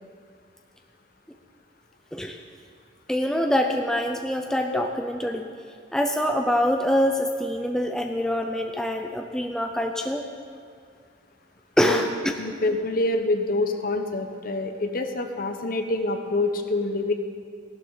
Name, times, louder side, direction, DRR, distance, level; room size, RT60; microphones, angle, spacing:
voice 1, 3.1-5.5 5.9-10.3 11.8-12.3, equal, 5° left, 4 dB, 0.4 m, -25 dB
voice 2, 12.4-17.1, left 2 dB, 50° left, 6 dB, 0.9 m, -26 dB
15.5 x 12.0 x 4.0 m, 2.2 s
head